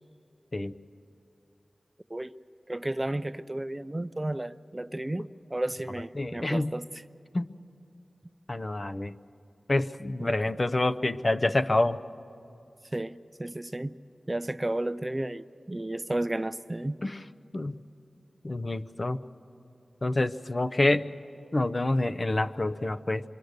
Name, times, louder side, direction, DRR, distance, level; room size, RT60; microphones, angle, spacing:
voice 1, 2.7-6.9 10.2-10.3 12.9-14.0 14.3-17.0, right 1 dB, 25° right, 14 dB, 0.5 m, -33 dB
voice 2, 6.2-6.7 7.3-7.5 8.5-9.1 9.7-12.0 17.0-17.2 17.5-17.8 18.4-19.2 20.0-21.1 21.5-23.2, left 2 dB, 45° left, 10 dB, 0.6 m, -27 dB
26.0 x 23.5 x 6.6 m, 2.6 s
wide cardioid pair, 55°, 0 cm